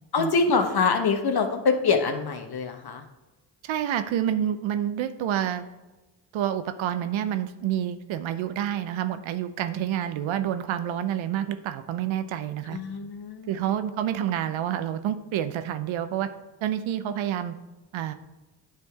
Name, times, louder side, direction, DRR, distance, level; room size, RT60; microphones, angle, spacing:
voice 1, 0.1-3.0 12.7-13.8, left 4 dB, 50° left, 6 dB, 1.1 m, -25 dB
voice 2, 3.6-5.6 6.3-12.8 13.5-16.3 16.6-17.5 17.9-18.1, right 10 dB, 75° right, 11 dB, 0.7 m, -28 dB
9.3 x 3.4 x 4.6 m, 1.1 s
supercardioid pair, 45°, 47 cm